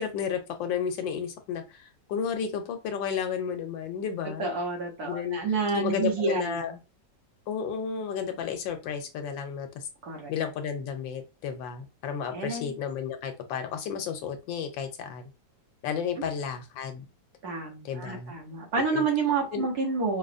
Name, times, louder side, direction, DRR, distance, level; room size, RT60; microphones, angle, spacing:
voice 1, 0.0-4.5 5.1-5.4 5.7-6.7 7.5-9.9 10.3-15.3 15.8-17.1 17.8-18.3 18.9-19.0 19.5-19.7, left 7 dB, 90° left, 6 dB, 1.4 m, -32 dB
voice 2, 4.4-6.7 10.0-10.3 12.3-12.7 16.2-16.3 17.4-20.2, right 4 dB, 60° right, 0 dB, 1.5 m, -29 dB
5.0 x 2.4 x 2.5 m, 0.27 s
omnidirectional pair, 2.0 m